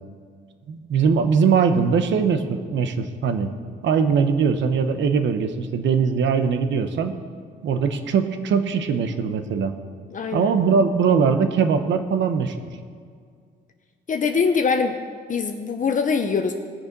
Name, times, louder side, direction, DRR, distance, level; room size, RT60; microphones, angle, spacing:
voice 1, 0.7-3.5 3.8-7.2 7.6-9.8 10.3-12.6, right 6 dB, 70° right, 8 dB, 1.1 m, -21 dB
voice 2, 10.1-10.5 14.1-15.0 15.3-16.5, left 5 dB, 40° left, 5 dB, 0.8 m, -23 dB
19.0 x 6.8 x 5.3 m, 2.1 s
cardioid pair, 90°, 20 cm